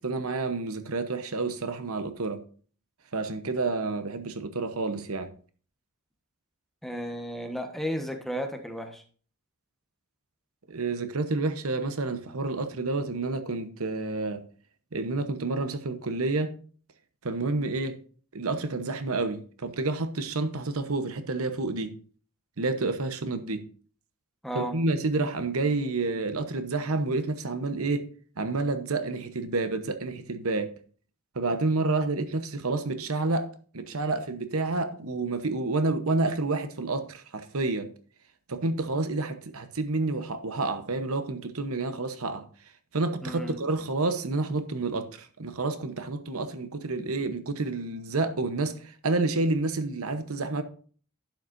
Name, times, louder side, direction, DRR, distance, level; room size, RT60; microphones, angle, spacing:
voice 1, 0.0-2.4 3.1-5.3 10.7-14.4 14.9-16.5 17.2-18.0 18.3-22.0 22.6-23.7 24.5-28.1 28.4-30.7 31.3-37.9 38.5-42.5 42.9-50.6, right 3 dB, 70° right, 1.0 m, -29 dB
voice 2, 6.8-9.0 24.4-24.8 43.2-43.6, equal, ahead, 1.2 m, -33 dB
11.5 x 9.3 x 2.6 m
head